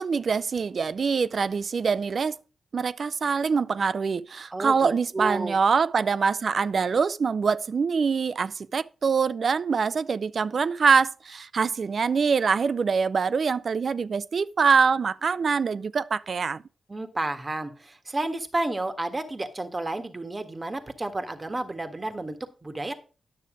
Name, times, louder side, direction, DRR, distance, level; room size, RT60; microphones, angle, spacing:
voice 1, 0.0-2.4 2.7-16.6, right 5 dB, 65° right, 0.4 m, -24 dB
voice 2, 4.5-5.5 16.9-22.9, right 2 dB, 35° right, 1.6 m, -31 dB
10.0 x 6.6 x 5.0 m
supercardioid pair, 40°, 0 cm